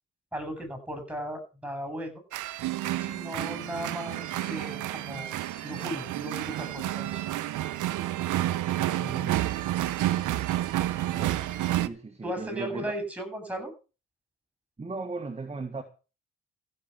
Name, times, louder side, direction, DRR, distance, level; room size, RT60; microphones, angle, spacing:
voice 1, 0.3-2.2 3.0-5.3 5.6-7.2 12.2-13.7, right 1 dB, 5° right, 7.9 m, -36 dB
sound 1, 2.3-11.9, right 14 dB, 80° right, 1.0 m, -30 dB
voice 2, 8.9-9.4 11.1-11.5 11.8-12.9 14.8-15.8, right 3 dB, 20° right, 1.9 m, -37 dB
15.0 x 7.1 x 7.0 m
cardioid pair, 90°, 30 cm